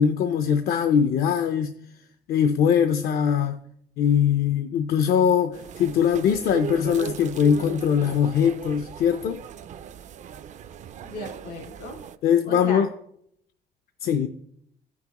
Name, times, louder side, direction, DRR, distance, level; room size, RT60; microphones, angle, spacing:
voice 1, 0.0-1.7 2.3-3.6 4.0-9.4 12.2-12.9 14.0-14.3, left 8 dB, 60° left, 0.5 m, -21 dB
sound 1, 5.5-12.2, right 9 dB, 45° right, 0.4 m, -38 dB
voice 2, 11.0-12.0 12.4-12.9 14.0-14.3, left 1 dB, 80° left, 2.3 m, -36 dB
13.5 x 5.9 x 2.9 m
cardioid pair, 110°, 17 cm